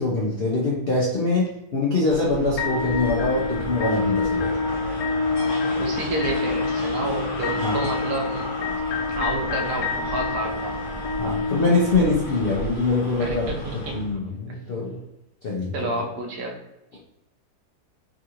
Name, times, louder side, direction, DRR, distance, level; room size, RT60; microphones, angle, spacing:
voice 1, 0.0-4.6 7.6-7.8 11.2-13.5 13.9-15.0 15.4-15.9, left 3 dB, 70° left, -3 dB, 0.5 m, -24 dB
sound 1, 2.1-14.1, equal, 55° left, 1.1 m, -34 dB
sound 2, 2.6-12.6, left 4 dB, 90° left, 1.2 m, -27 dB
voice 2, 5.2-8.5 9.1-10.8 13.2-14.0 15.7-16.6, right 2 dB, 85° right, 1 dB, 1.3 m, -30 dB
3.6 x 2.4 x 2.8 m, 0.91 s
omnidirectional pair, 1.7 m